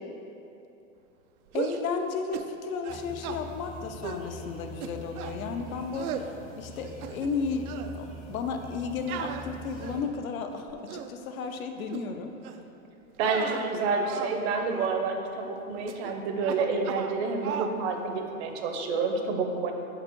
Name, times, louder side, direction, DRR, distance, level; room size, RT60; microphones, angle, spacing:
voice 1, 1.5-6.3 6.6-7.7 7.9-12.3 13.3-13.5, left 5 dB, 75° left, 5 dB, 0.7 m, -33 dB
sound 1, 1.5-1.9 2.3-2.5 2.8-3.4 4.0-4.3 4.8-5.4 5.9-6.3 6.8-7.4 7.7-7.9 9.1-10.1 10.7-11.1 11.9-12.1 12.4-12.7 13.2-14.4 14.7-14.9 15.9-16.1 16.4-17.2 17.4-17.8, right 8 dB, 85° right, 0.5 m, -36 dB
sound 2, 2.9-10.0, left 1 dB, 15° left, 0.3 m, -44 dB
voice 2, 13.2-19.7, right 4 dB, 50° right, 4 dB, 0.7 m, -29 dB
4.9 x 4.2 x 4.5 m, 2.8 s
hypercardioid pair, 135°, 42 cm